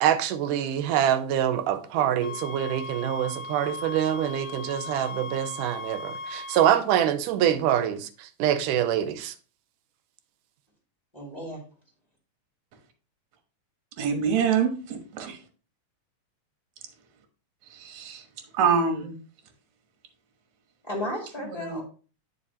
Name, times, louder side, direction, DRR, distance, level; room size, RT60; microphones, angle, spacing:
voice 1, 0.0-9.3, right 10 dB, 90° right, 2.2 m, -25 dB
sound 1, 2.2-6.8, left 2 dB, 80° left, 2.0 m, -37 dB
voice 2, 11.1-11.6 20.8-21.8, left 1 dB, 15° left, 1.9 m, -33 dB
voice 3, 14.0-15.4 17.7-18.2 18.5-19.1 21.6-21.8, right 6 dB, 70° right, 2.4 m, -25 dB
9.9 x 4.8 x 2.8 m
omnidirectional pair, 3.6 m